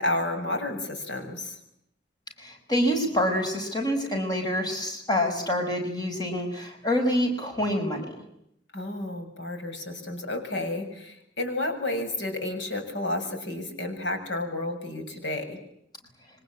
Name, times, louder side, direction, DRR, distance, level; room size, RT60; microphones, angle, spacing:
voice 1, 0.0-1.6 8.7-15.6, left 2 dB, 80° left, 6 dB, 6.8 m, -31 dB
voice 2, 2.4-8.1, equal, 20° left, 3 dB, 5.9 m, -26 dB
27.0 x 24.5 x 8.6 m, 0.75 s
head